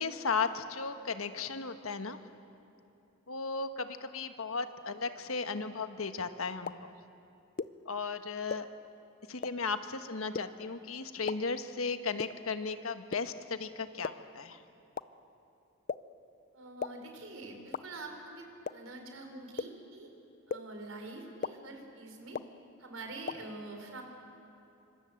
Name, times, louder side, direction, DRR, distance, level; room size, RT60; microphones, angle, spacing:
voice 1, 0.0-2.2 3.3-6.9 7.8-8.7 9.3-14.6, left 4 dB, 90° left, 9 dB, 1.4 m, -35 dB
sound 1, 6.7-6.8 7.6-7.7 8.5-8.6 9.4-9.5 10.3-10.4 11.3-11.4 12.2-12.3 13.1-13.2 14.0-14.1 15.0-15.1 15.9-16.0 16.8-16.9 17.7-17.8 18.6-18.7 19.6-19.7 20.5-20.6 21.4-21.5 22.3-22.4 23.3-23.4, left 5 dB, 45° left, 0.5 m, -34 dB
voice 2, 16.5-20.1 20.5-22.4 22.8-24.0, right 2 dB, 80° right, 4 dB, 4.6 m, -45 dB
27.0 x 25.5 x 7.9 m, 2.8 s
head